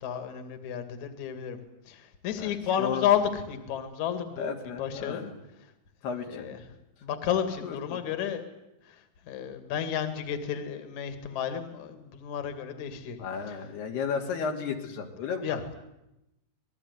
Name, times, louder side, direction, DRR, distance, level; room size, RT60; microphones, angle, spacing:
voice 1, 0.0-1.6 1.9-5.2 6.3-6.6 7.0-8.5 8.9-13.2 13.5-13.6 15.4-15.8, left 9 dB, 50° left, 9 dB, 3.3 m, -31 dB
voice 2, 4.4-5.3 6.0-6.5 7.6-8.0 13.2-15.6, left 6 dB, 85° left, 3 dB, 4.8 m, -33 dB
26.5 x 21.0 x 9.6 m, 0.90 s
omnidirectional pair, 4.5 m